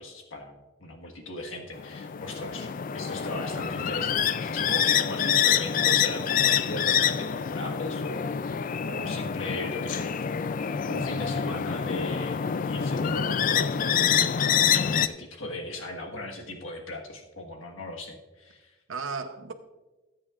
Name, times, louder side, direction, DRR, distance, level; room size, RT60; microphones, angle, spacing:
voice 1, 0.0-8.3 8.9-10.1 10.9-12.4 12.6-18.8, left 2 dB, 80° left, 1.6 m, -38 dB
sound 1, 1.8-15.1, left 8 dB, 40° left, 0.3 m, -26 dB
voice 2, 11.1-11.6 18.9-19.5, right 4 dB, 80° right, 0.8 m, -36 dB
19.5 x 8.4 x 2.5 m
head